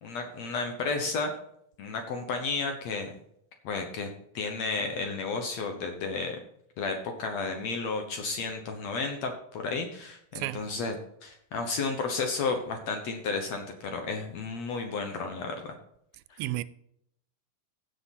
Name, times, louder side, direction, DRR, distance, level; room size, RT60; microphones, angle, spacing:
voice 1, 0.0-1.3 1.8-3.1 3.6-4.1 4.3-6.4 6.8-15.5 16.3-16.4, left 4 dB, 65° left, 1.8 m, -32 dB
voice 2, 10.4-10.7 16.4-16.6, right 16 dB, 85° right, 2.4 m, -32 dB
16.0 x 5.9 x 4.2 m
omnidirectional pair, 4.2 m